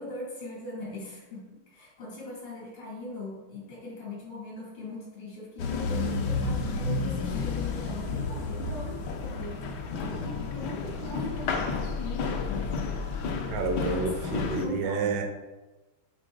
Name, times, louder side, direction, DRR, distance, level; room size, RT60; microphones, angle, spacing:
voice 1, 0.0-12.8 13.9-15.2, left 2 dB, 80° left, -4 dB, 3.4 m, -40 dB
sound 1, 5.6-14.7, left 4 dB, 65° left, 1.2 m, -31 dB
voice 2, 13.5-15.2, right 3 dB, 60° right, 4 dB, 1.2 m, -29 dB
9.6 x 4.0 x 3.8 m, 1.2 s
omnidirectional pair, 2.4 m